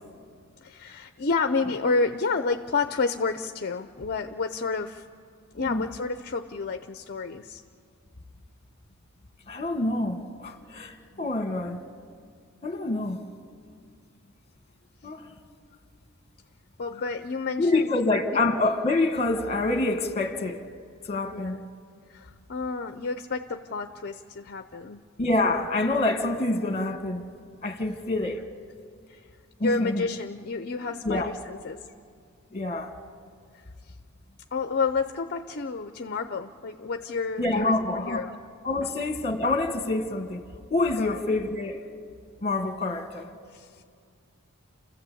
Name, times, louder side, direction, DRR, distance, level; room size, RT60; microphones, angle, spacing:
voice 1, 0.6-5.0 5.5-7.6 16.8-18.1 21.3-21.6 22.1-25.1 29.1-29.3 29.6-31.9 33.8-34.0 34.5-38.4 38.8-38.9 40.9-41.2 43.5-43.8, left 4 dB, 50° left, 0.6 m, -30 dB
voice 2, 9.5-11.8 12.6-13.2 15.0-15.3 17.6-20.6 21.1-21.6 25.2-27.2 27.6-28.4 29.6-30.0 31.0-31.3 32.5-32.9 37.4-38.2 38.6-40.4 40.7-41.8 42.4-43.3, left 2 dB, 30° left, 1.6 m, -26 dB
29.0 x 14.5 x 8.5 m
head